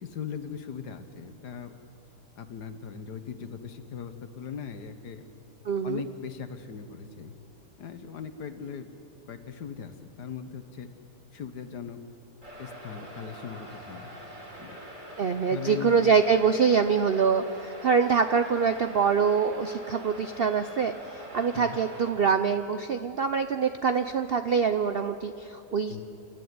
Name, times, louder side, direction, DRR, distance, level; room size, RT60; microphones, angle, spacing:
voice 1, 0.0-1.7 2.4-5.2 5.8-7.3 7.8-8.9 9.3-10.9 11.3-12.0 12.6-14.1 14.6-14.8 15.5-16.1 21.5-21.8 25.9-26.0, left 7 dB, 75° left, 9 dB, 1.8 m, -39 dB
voice 2, 5.6-6.0 15.2-26.0, right 6 dB, 60° right, 9 dB, 0.6 m, -25 dB
sound 1, 12.4-22.1, right 1 dB, 25° right, 3.8 m, -44 dB
29.0 x 13.0 x 9.6 m, 2.9 s
omnidirectional pair, 1.8 m